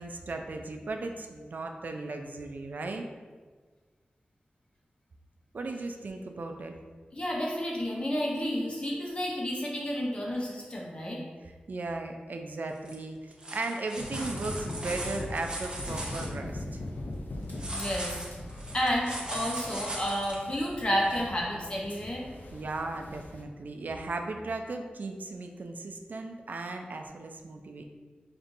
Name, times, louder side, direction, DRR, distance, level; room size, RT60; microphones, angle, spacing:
voice 1, 0.0-3.0 5.5-6.7 11.5-16.8 22.5-27.8, right 3 dB, 65° right, 4 dB, 0.3 m, -36 dB
voice 2, 7.1-11.2 17.7-18.1 18.7-22.2, equal, 35° left, -3 dB, 0.8 m, -31 dB
sound 1, 12.8-12.9 13.3-16.3 17.5-20.4 21.1-21.2, right 1 dB, 30° right, 0.7 m, -38 dB
sound 2, 14.0-23.4, left 1 dB, 70° left, 0.5 m, -40 dB
5.4 x 2.5 x 2.5 m, 1.5 s
wide cardioid pair, 100°, 3 cm